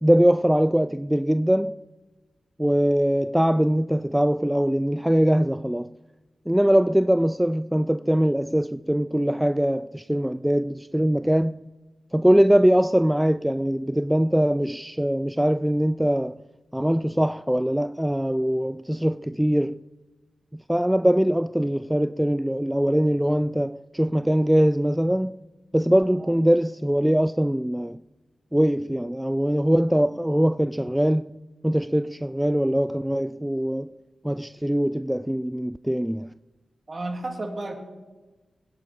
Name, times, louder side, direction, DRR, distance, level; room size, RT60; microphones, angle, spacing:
voice 1, 0.0-1.8 2.6-5.9 6.5-11.7 12.1-16.4 16.7-19.8 20.7-25.4 25.7-28.0 28.5-31.3 31.6-33.9 34.2-36.3, equal, 5° right, 0.4 m, -22 dB
voice 2, 36.9-37.7, right 2 dB, 45° right, 3.3 m, -32 dB
21.5 x 10.5 x 4.5 m
cardioid pair, 40°, 0 cm